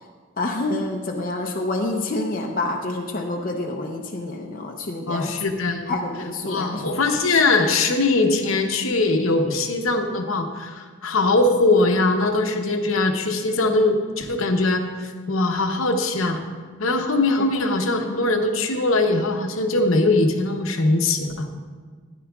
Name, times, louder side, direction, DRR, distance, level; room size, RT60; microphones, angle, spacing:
voice 1, 0.4-5.3 5.9-6.9 17.4-17.5, left 2 dB, 40° left, 0 dB, 0.6 m, -27 dB
voice 2, 5.1-6.0 6.4-16.4 16.8-21.5, left 2 dB, 70° left, 5 dB, 0.8 m, -21 dB
13.0 x 9.7 x 2.3 m, 1.5 s
head